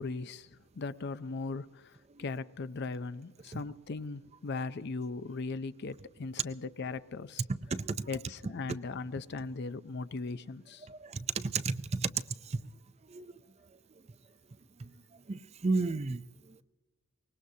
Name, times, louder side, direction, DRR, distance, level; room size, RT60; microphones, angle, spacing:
voice 1, 0.0-1.9 2.2-7.4 8.1-10.9, left 3 dB, 50° left, 14 dB, 0.5 m, -38 dB
voice 2, 7.5-8.1 10.9-12.1 12.5-12.6 13.1-13.3 14.8-14.9 15.3-16.2, right 4 dB, 30° right, 12 dB, 0.4 m, -33 dB
23.5 x 19.5 x 2.7 m, 1.2 s
head